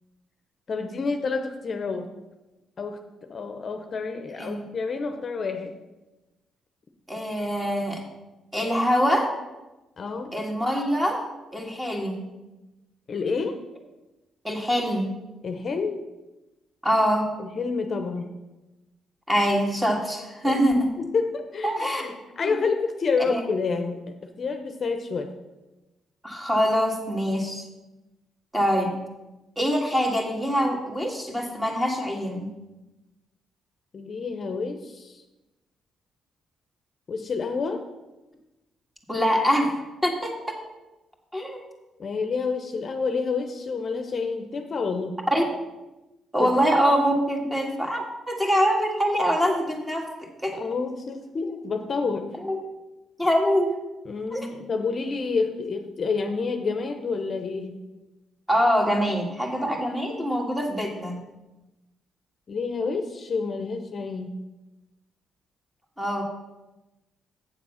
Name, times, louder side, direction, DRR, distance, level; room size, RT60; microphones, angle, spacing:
voice 1, 0.7-2.1 2.8-3.0 3.3-5.7 10.0-10.3 13.1-13.6 15.4-16.0 17.4-18.3 20.4-20.6 21.1-25.3 33.9-35.2 37.1-37.8 42.0-45.2 46.4-46.8 50.5-52.3 54.1-57.8 62.5-64.3, left 4 dB, 45° left, 6 dB, 0.8 m, -29 dB
voice 2, 7.1-8.0 8.5-9.3 10.3-11.2 11.5-12.2 14.4-15.1 16.8-17.3 19.3-20.9 21.6-22.1 22.4-22.5 23.3-23.4 26.2-27.6 28.5-29.0 29.6-32.5 39.1-39.7 40.0-40.6 41.3-41.6 45.3-45.4 46.3-50.1 50.4-50.5 52.4-52.6 53.2-53.8 54.3-54.5 58.5-61.2 66.0-66.2, equal, 10° right, 1 dB, 1.9 m, -24 dB
8.1 x 7.1 x 5.7 m, 1.1 s
cardioid pair, 90°, 0 cm